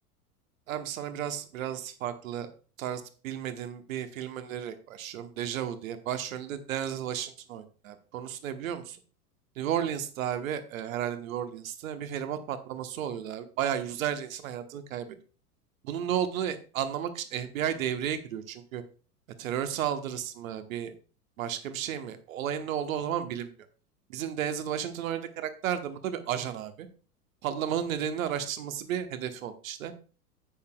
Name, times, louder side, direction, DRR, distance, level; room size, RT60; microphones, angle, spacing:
voice 1, 0.7-2.5 2.8-9.0 9.6-15.1 15.8-18.8 19.4-20.9 21.4-23.5 24.1-26.9 27.4-29.9, right 9 dB, 55° right, 9 dB, 1.2 m, -33 dB
10.5 x 8.5 x 2.3 m, 0.37 s
figure-of-eight pair, 90°, 47 cm